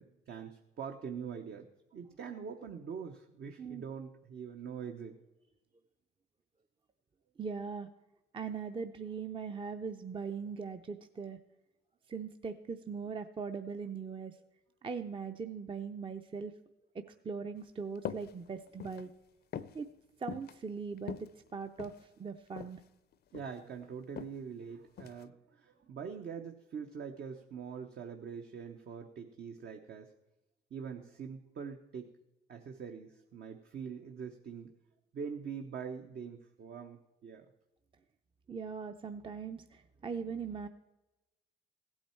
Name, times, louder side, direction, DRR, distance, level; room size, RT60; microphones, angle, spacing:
voice 1, 0.0-1.7 1.9-5.2 23.3-30.1 30.7-32.1 32.5-34.7 35.1-37.5, right 6 dB, 55° right, 4 dB, 0.9 m, -44 dB
voice 2, 7.4-7.9 8.3-11.4 12.1-14.4 14.8-16.5 16.9-19.1 19.7-19.9 20.2-21.9 22.2-22.8 38.5-40.7, right 5 dB, 25° right, 7 dB, 0.5 m, -40 dB
sound 1, 18.0-18.3 18.7-19.0 19.5-19.8 20.3-20.5 21.0-22.0 22.6-22.8 23.1-23.6 24.2-24.4 25.0-25.2, left 8 dB, 55° left, 0.5 m, -42 dB
15.5 x 8.8 x 4.4 m, 1.0 s
cardioid pair, 90°, 20 cm